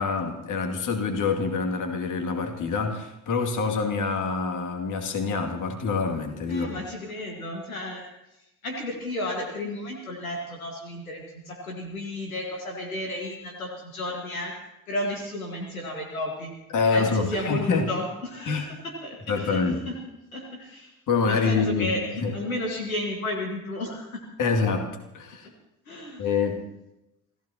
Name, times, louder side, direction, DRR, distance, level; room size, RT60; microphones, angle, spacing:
voice 1, 0.0-6.7 16.7-17.9 18.5-18.6 19.3-19.8 21.1-22.3 24.4-24.9 25.1-25.5 26.2-26.6, left 4 dB, 50° left, 3 dB, 2.5 m, -26 dB
voice 2, 6.5-8.1 8.6-16.5 16.9-20.0 20.3-20.9 21.2-24.2 25.4-25.5 25.9-26.2, left 1 dB, 90° left, 1 dB, 1.8 m, -33 dB
28.0 x 15.0 x 2.9 m, 0.92 s
figure-of-eight pair, 55°, 41 cm